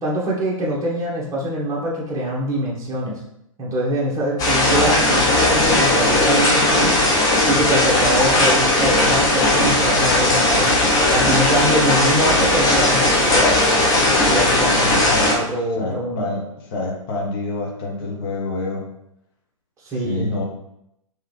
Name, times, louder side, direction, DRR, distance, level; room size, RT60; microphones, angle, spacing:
voice 1, 0.0-3.2 3.6-6.9 7.5-10.8 11.1-13.5 14.2-16.3 19.8-20.3, right 1 dB, 20° right, -5 dB, 1.3 m, -24 dB
sound 1, 4.4-15.4, left 1 dB, 20° left, 0.8 m, -17 dB
voice 2, 12.1-12.8 14.8-15.3 15.8-18.8 20.0-20.4, left 2 dB, 40° left, 0 dB, 1.1 m, -28 dB
3.7 x 3.2 x 3.3 m, 0.80 s
figure-of-eight pair, 120°, 18 cm